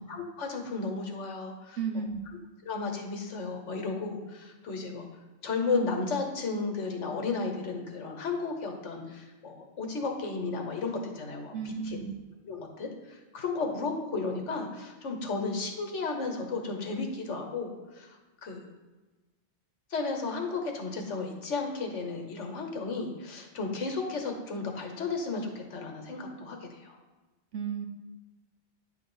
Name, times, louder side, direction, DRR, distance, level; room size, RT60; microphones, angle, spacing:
voice 1, 0.0-1.8 2.7-5.1 5.4-12.0 12.5-18.7 19.9-27.0, left 4 dB, 90° left, 3 dB, 1.4 m, -34 dB
voice 2, 1.8-2.3 11.5-12.2 27.5-27.9, right 6 dB, 90° right, 5 dB, 1.2 m, -33 dB
9.4 x 3.5 x 5.4 m, 1.2 s
omnidirectional pair, 1.2 m